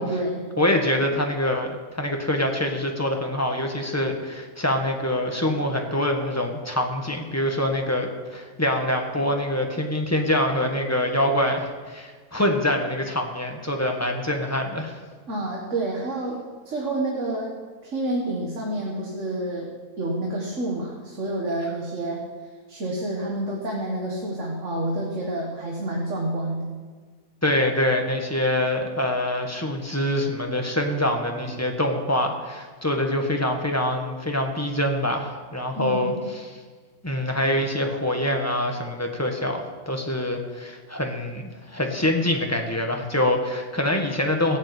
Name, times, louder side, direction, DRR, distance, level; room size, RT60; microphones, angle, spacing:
voice 1, 0.0-0.5 15.3-17.5 17.8-19.7 20.0-22.2 22.7-26.7 30.5-30.6 31.5-31.6 35.8-36.3, right 1 dB, 55° right, -2 dB, 2.0 m, -29 dB
voice 2, 0.6-15.0 27.4-36.6 37.0-44.6, left 1 dB, 10° left, 2 dB, 1.5 m, -25 dB
16.0 x 7.3 x 8.4 m, 1.5 s
omnidirectional pair, 1.6 m